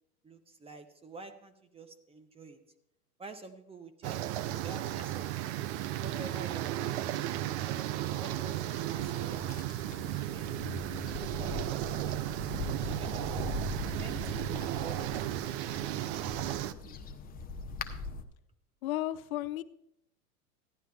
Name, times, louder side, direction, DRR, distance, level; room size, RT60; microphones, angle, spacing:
voice 1, 0.2-2.6 3.2-5.3 6.0-7.0 7.3-7.6 8.2-9.5 9.8-10.5 11.2-14.3 14.8-17.0 18.0-18.1, right 3 dB, 10° right, 9 dB, 0.9 m, -49 dB
sound 1, 4.0-16.7, right 14 dB, 45° right, 0.6 m, -35 dB
sound 2, 8.0-18.2, left 4 dB, 20° left, 0.8 m, -42 dB
voice 2, 18.8-19.6, left 14 dB, 65° left, 15 dB, 0.6 m, -33 dB
15.0 x 10.5 x 3.5 m, 0.79 s
hypercardioid pair, 115°, 46 cm